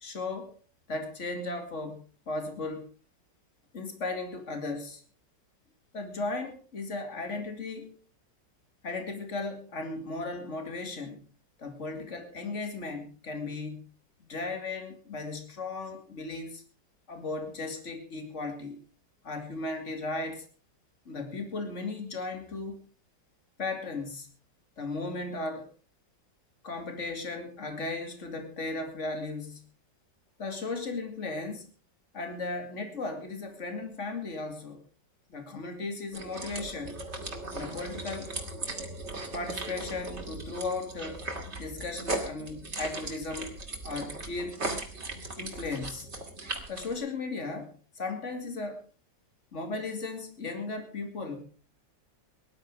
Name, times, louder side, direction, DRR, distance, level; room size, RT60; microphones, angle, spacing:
voice 1, 0.0-0.6 0.9-2.9 3.7-5.0 5.9-8.0 8.8-11.2 11.6-13.9 14.2-16.6 17.1-18.8 19.2-20.5 21.1-22.9 23.6-24.3 24.8-25.7 26.6-29.6 30.4-31.7 32.1-34.8 35.3-37.0 37.5-38.4 39.3-41.3 41.6-43.5 43.8-44.6 45.4-46.2 46.7-48.9 49.5-51.5, left 3 dB, 40° left, 6 dB, 2.9 m, -36 dB
sound 1, 36.1-47.0, right 2 dB, 35° right, 2.7 m, -38 dB
18.5 x 11.5 x 4.9 m, 0.38 s
omnidirectional pair, 2.0 m